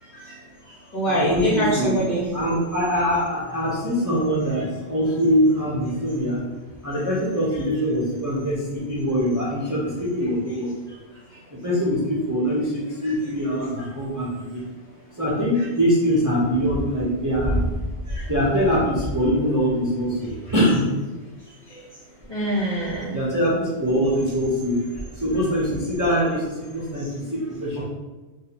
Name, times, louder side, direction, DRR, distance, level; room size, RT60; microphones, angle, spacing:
voice 1, 0.0-0.4 0.7-2.3 13.0-13.1 15.5-15.6 18.1-18.3 20.5-20.6 21.7-21.8 22.3-23.2 27.0-27.1, right 1 dB, 40° left, -8 dB, 1.5 m, -26 dB
voice 2, 1.1-2.0 2.3-6.4 6.8-10.7 11.5-14.7 15.1-17.7 18.1-20.8 23.1-27.8, equal, 20° right, -9 dB, 0.8 m, -23 dB
2.7 x 2.7 x 4.2 m, 1.2 s
omnidirectional pair, 1.1 m